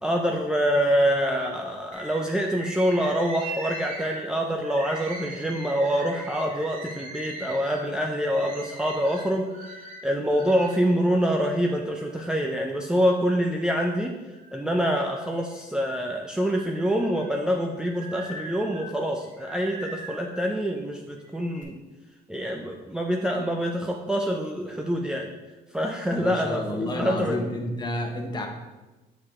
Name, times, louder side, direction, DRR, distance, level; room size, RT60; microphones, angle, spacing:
voice 1, 0.0-9.5 10.0-14.1 14.5-21.8 22.3-25.3 25.7-27.4, equal, 5° right, 0 dB, 0.5 m, -26 dB
Bird, 1.9-10.8 11.4-12.4 12.9-13.9 14.3-15.7 16.2-20.5 21.2-21.6, right 2 dB, 50° right, 1.6 m, -41 dB
voice 2, 26.1-28.5, left 1 dB, 25° left, 2 dB, 1.0 m, -30 dB
7.1 x 4.6 x 3.7 m, 1.1 s
cardioid pair, 110°, 17 cm